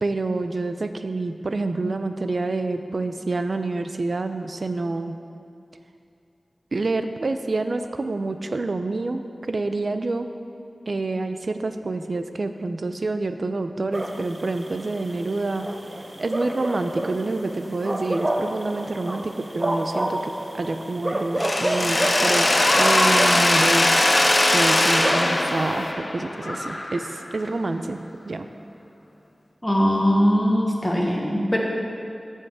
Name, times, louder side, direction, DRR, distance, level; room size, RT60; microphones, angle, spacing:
voice 1, 0.0-5.2 6.7-10.3 10.9-15.7 16.2-23.9 24.5-28.0 28.2-28.5, right 2 dB, 60° right, 8 dB, 0.5 m, -27 dB
sound 1, 13.9-25.9, right 1 dB, 25° right, 0.7 m, -30 dB
Mechanisms, 21.4-27.3, left 1 dB, 40° left, 0.7 m, -20 dB
voice 2, 29.6-31.6, equal, 10° left, -2 dB, 1.2 m, -20 dB
8.3 x 5.5 x 7.5 m, 2.4 s
wide cardioid pair, 85°, 0 cm